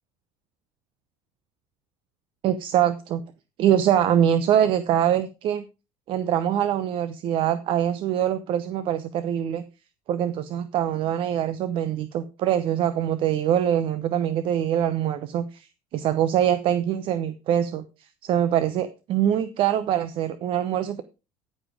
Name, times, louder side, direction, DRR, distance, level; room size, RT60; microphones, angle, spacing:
voice 1, 2.4-3.2 3.6-5.7 6.1-9.6 10.1-17.8 18.2-21.0, right 10 dB, 55° right, 12 dB, 0.9 m, -23 dB
14.0 x 5.3 x 4.9 m, 0.29 s
supercardioid pair, 110°, 10 cm